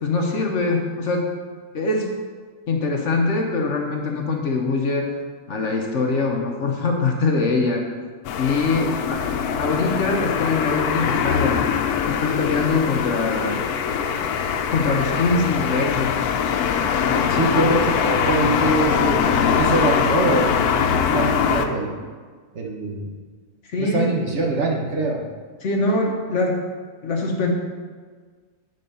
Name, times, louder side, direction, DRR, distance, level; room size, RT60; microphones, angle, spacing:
voice 1, 0.0-1.3 1.7-2.1 2.7-5.1 5.5-7.9 8.4-9.2 9.6-11.7 12.1-13.7 14.7-16.1 17.7-17.8 23.7-24.2 25.6-26.6 27.0-27.5, left 3 dB, 55° left, 1 dB, 1.0 m, -23 dB
sound 1, 8.2-21.7, left 7 dB, 85° left, 1.1 m, -22 dB
voice 2, 17.1-22.0 22.5-23.1 23.8-25.2, right 2 dB, 50° right, 0 dB, 1.2 m, -24 dB
9.3 x 4.3 x 5.4 m, 1.6 s
omnidirectional pair, 1.6 m